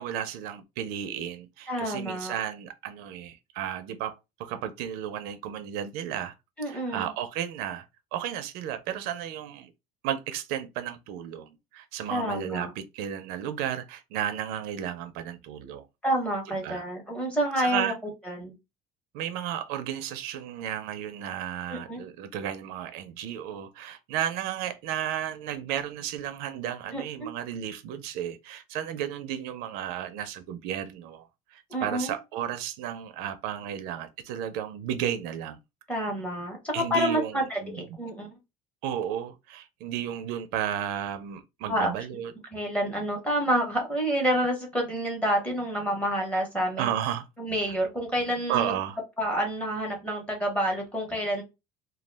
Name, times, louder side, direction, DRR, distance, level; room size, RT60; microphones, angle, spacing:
voice 1, 0.0-6.3 6.7-7.8 8.1-9.7 10.0-15.8 16.5-16.8 17.6-18.0 19.1-35.6 36.7-37.8 38.8-42.3 46.8-47.3 48.5-49.0, right 10 dB, 70° right, 0.4 m, -33 dB
voice 2, 1.7-2.4 6.6-7.1 12.1-12.7 16.0-18.5 21.7-22.0 26.9-27.3 31.7-32.1 35.9-38.3 41.7-41.9 42.5-46.9 47.4-48.7 49.2-51.4, equal, 10° left, 0.7 m, -28 dB
2.2 x 2.1 x 3.1 m
cardioid pair, 170°, 17 cm